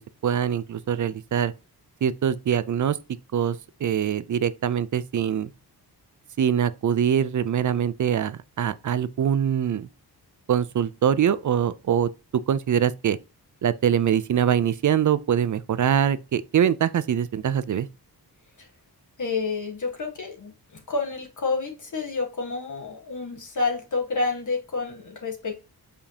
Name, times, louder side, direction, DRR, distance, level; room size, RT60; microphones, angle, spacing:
voice 1, 0.2-1.5 2.0-3.0 3.3-5.5 6.4-9.9 10.5-12.1 12.5-13.2 13.6-17.9, right 9 dB, 50° right, 0.5 m, -23 dB
voice 2, 19.2-20.5 20.9-25.6, left 4 dB, 50° left, 1.5 m, -29 dB
7.2 x 5.1 x 2.8 m
wide cardioid pair, 170°, 39 cm